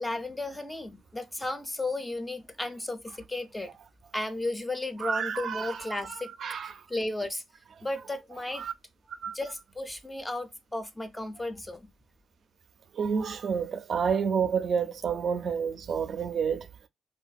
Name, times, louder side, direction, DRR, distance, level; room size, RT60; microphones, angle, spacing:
voice 1, 0.0-3.8 4.1-6.3 6.9-7.4 7.8-8.6 9.3-11.9, left 2 dB, 10° left, 0.4 m, -34 dB
voice 2, 5.0-6.7 8.6-8.7 9.2-9.3 12.9-16.7, right 6 dB, 55° right, 0.4 m, -29 dB
2.6 x 2.3 x 2.3 m
cardioid pair, 90°, 0 cm